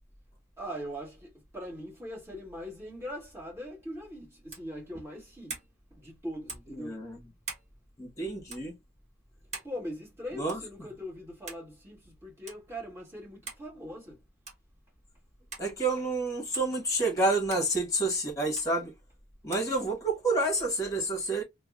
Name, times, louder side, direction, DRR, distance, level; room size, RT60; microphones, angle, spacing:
voice 1, 0.6-5.6 5.9-7.0 9.6-14.2, equal, 15° right, 1.9 m, -41 dB
sound 1, 4.5-4.7 5.5-5.7 6.5-6.7 7.4-7.7 8.5-8.6 9.5-9.7 10.5-10.7 11.5-11.7 12.5-12.6 13.5-13.7 14.4-14.7 15.5-15.7 16.5-16.7 17.5-17.7 18.6-18.7 19.5-19.7, right 4 dB, 35° right, 1.3 m, -42 dB
voice 2, 6.7-7.2 8.0-8.7 10.3-10.6 15.6-18.9 19.4-21.4, right 2 dB, 15° left, 1.4 m, -29 dB
3.4 x 2.2 x 3.5 m
head